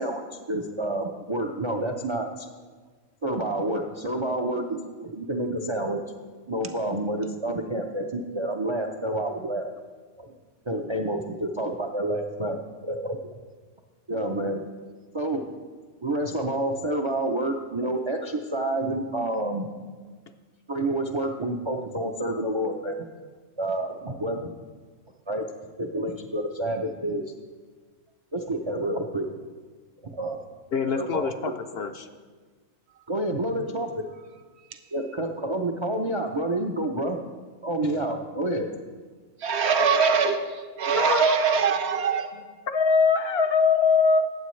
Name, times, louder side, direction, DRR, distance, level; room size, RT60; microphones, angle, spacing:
voice 1, 0.0-2.5 3.2-6.0 6.5-9.6 10.2-10.4 10.7-13.2 14.1-14.6 15.1-15.5 16.0-19.7 20.7-23.0 23.6-24.6 25.3-25.5 25.8-27.2 28.3-29.3 30.0-30.4 30.7-31.8 33.1-34.1 34.9-37.2 37.6-38.7, right 1 dB, 40° right, 3 dB, 0.4 m, -29 dB
voice 2, 30.7-32.1 37.8-37.9 40.9-41.3 42.7-44.2, left 5 dB, 60° left, 7 dB, 0.7 m, -23 dB
voice 3, 39.4-40.4 40.8-42.3, right 5 dB, 60° right, 7 dB, 1.0 m, -22 dB
18.5 x 7.6 x 3.1 m, 1.5 s
omnidirectional pair, 1.3 m